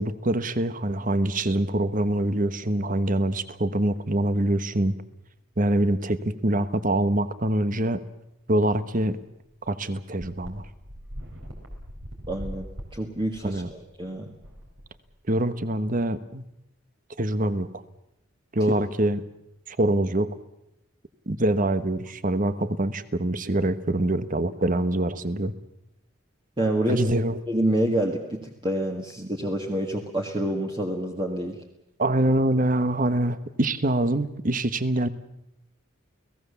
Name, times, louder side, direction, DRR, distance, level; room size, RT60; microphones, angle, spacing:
voice 1, 0.0-4.9 5.6-8.0 8.5-9.2 9.6-10.7 13.4-13.7 15.3-16.4 17.2-17.8 18.5-19.2 19.7-20.3 21.3-25.5 26.9-27.4 32.0-35.1, right 1 dB, 40° right, 13 dB, 1.2 m, -24 dB
sound 1, 9.2-9.3 9.6-9.7 10.2-15.4, equal, 65° right, 4.6 m, -41 dB
voice 2, 12.3-12.7 12.9-14.3 26.6-27.0 27.5-31.6, right 1 dB, 25° right, 1 dB, 1.8 m, -27 dB
29.5 x 18.0 x 7.0 m, 0.87 s
head